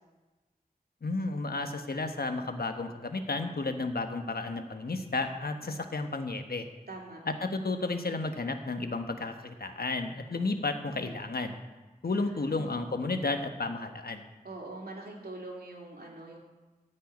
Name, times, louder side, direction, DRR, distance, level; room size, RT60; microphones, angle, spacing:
voice 1, 1.0-6.7 7.2-11.6 12.0-14.2, left 3 dB, 80° left, 6 dB, 1.2 m, -32 dB
voice 2, 6.9-7.2 12.3-12.6 14.4-16.4, right 2 dB, 90° right, -2 dB, 2.7 m, -43 dB
14.5 x 5.6 x 9.4 m, 1.2 s
wide cardioid pair, 60°, 16 cm